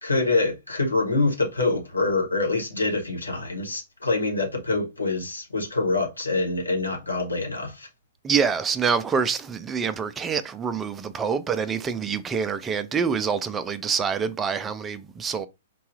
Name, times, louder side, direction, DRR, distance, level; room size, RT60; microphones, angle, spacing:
voice 1, 0.0-7.9, left 3 dB, 80° left, 1.2 m, -25 dB
voice 2, 8.2-15.5, right 6 dB, 15° right, 0.3 m, -26 dB
4.5 x 2.3 x 2.9 m
figure-of-eight pair, 110°, 0 cm